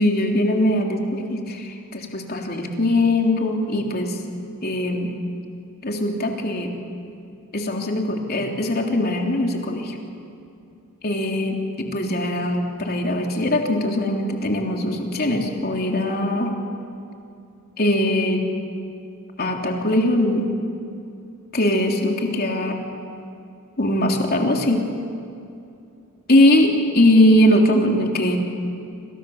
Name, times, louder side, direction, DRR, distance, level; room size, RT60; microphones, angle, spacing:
voice 1, 0.0-4.2 4.6-5.1 5.8-6.7 7.5-9.9 11.0-16.5 17.8-18.5 19.4-20.5 21.5-22.8 23.8-24.8 26.3-28.5, left 1 dB, 45° left, 1 dB, 3.3 m, -21 dB
27.5 x 26.5 x 7.2 m, 2.6 s
head